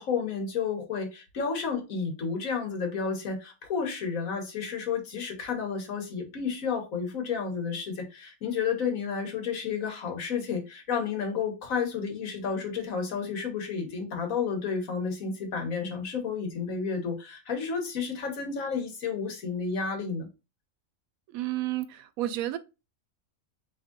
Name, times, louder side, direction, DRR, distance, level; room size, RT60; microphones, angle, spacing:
voice 1, 0.0-20.3, left 6 dB, 80° left, 1.6 m, -31 dB
voice 2, 21.3-22.6, right 14 dB, 90° right, 1.0 m, -31 dB
3.7 x 3.1 x 3.7 m
omnidirectional pair, 1.4 m